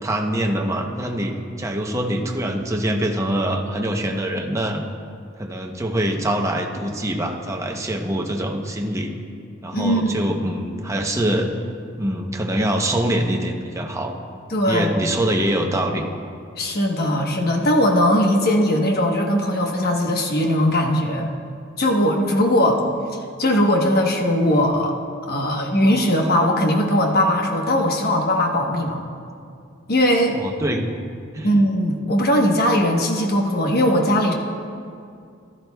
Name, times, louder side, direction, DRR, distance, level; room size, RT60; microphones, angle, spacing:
voice 1, 0.0-4.8 5.4-9.1 9.6-11.5 12.0-14.1 14.7-16.0 30.3-30.9 31.3-31.5, right 1 dB, 15° right, 2 dB, 0.8 m, -24 dB
voice 2, 9.7-10.2 14.5-14.9 16.6-21.3 21.8-22.9 23.4-25.0 25.3-29.0 29.9-30.4 31.4-34.3, equal, 50° left, 2 dB, 1.1 m, -19 dB
15.0 x 12.5 x 2.3 m, 2.3 s
head